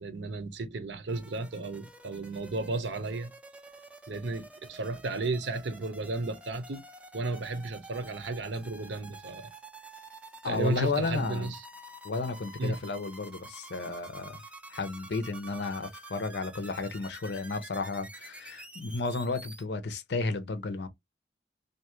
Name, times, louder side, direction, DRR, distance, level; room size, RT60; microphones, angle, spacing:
voice 1, 0.0-3.3 4.1-6.8 7.1-9.5 10.4-11.6 12.6-12.8, right 2 dB, 85° right, 0.7 m, -33 dB
sound 1, 1.1-19.6, right 2 dB, 5° right, 0.4 m, -49 dB
voice 2, 10.4-11.5 12.0-14.4 14.7-20.9, left 3 dB, 75° left, 0.6 m, -33 dB
2.6 x 2.3 x 2.9 m
head